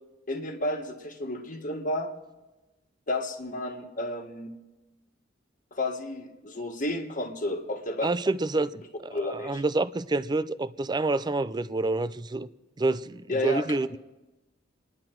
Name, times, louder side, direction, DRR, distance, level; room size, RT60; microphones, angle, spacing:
voice 1, 0.3-2.1 3.1-4.5 5.7-8.1 9.1-9.6 13.3-13.7 13.9-14.0, left 1 dB, 45° left, 1.6 m, -31 dB
voice 2, 8.0-12.5 12.8-14.0, right 2 dB, 20° right, 0.4 m, -28 dB
29.0 x 11.0 x 4.5 m
head